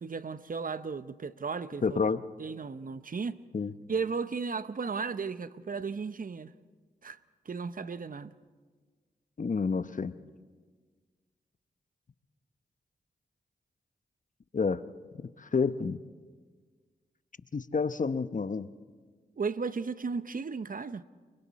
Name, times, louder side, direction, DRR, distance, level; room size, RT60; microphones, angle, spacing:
voice 1, 0.0-2.0 2.4-3.4 3.9-6.5 7.0-7.2 7.5-8.3 19.4-21.0, right 5 dB, 50° right, 0.8 m, -35 dB
voice 2, 1.8-2.2 3.5-3.7 9.4-10.2 14.5-14.8 15.4-16.0 17.5-18.7, left 5 dB, 45° left, 0.9 m, -29 dB
29.5 x 23.5 x 4.2 m
cardioid pair, 45°, 18 cm